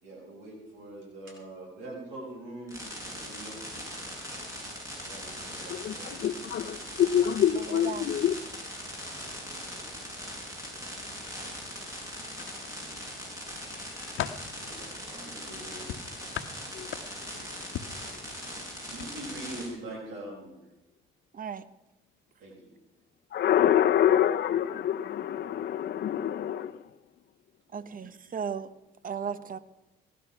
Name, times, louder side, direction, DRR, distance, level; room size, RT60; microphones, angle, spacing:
voice 1, 0.0-4.0 5.0-6.7 9.4-9.8 12.7-13.3 14.6-15.9 18.9-20.6 22.4-22.7 27.7-28.1, right 1 dB, 75° right, 6.5 m, -44 dB
sound 1, 2.7-19.7, equal, 15° right, 7.5 m, -40 dB
voice 2, 5.7-8.3 13.0-13.2 13.7-14.2 16.7-16.9 23.3-26.8, left 10 dB, 55° left, 0.6 m, -26 dB
voice 3, 7.5-8.1 21.3-21.7 27.7-28.7 29.0-29.6, right 7 dB, 45° right, 1.0 m, -35 dB
sound 2, 12.3-13.1 13.6-14.5 15.9-17.3 17.7-18.0 18.9-19.1 19.5-19.6, left 11 dB, 80° left, 1.0 m, -38 dB
17.5 x 11.5 x 6.0 m
cardioid pair, 90°, 20 cm